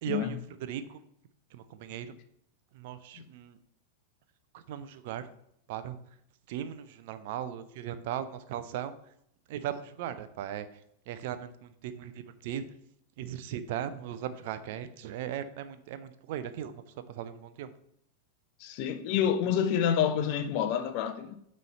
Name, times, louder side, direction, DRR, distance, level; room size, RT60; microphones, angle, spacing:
voice 1, 0.0-1.0 1.5-2.2 2.7-3.6 4.5-5.3 5.7-6.0 6.5-8.9 9.5-10.7 11.1-12.7 13.2-16.8 17.1-17.7, right 10 dB, 50° right, 0.5 m, -38 dB
voice 2, 18.6-21.4, left 8 dB, 45° left, 0.6 m, -28 dB
9.0 x 3.2 x 4.2 m
figure-of-eight pair, 90°, 0 cm